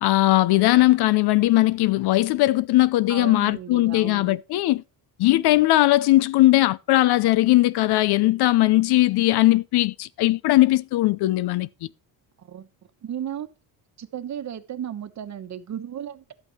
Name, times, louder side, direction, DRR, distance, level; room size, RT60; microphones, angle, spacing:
voice 1, 0.0-4.8 5.2-11.7, left 17 dB, 60° left, 0.6 m, -19 dB
voice 2, 3.1-4.4 12.4-12.7 13.0-13.5 14.0-16.3, right 9 dB, 40° right, 1.2 m, -34 dB
12.5 x 8.4 x 3.1 m
cardioid pair, 145°, 43 cm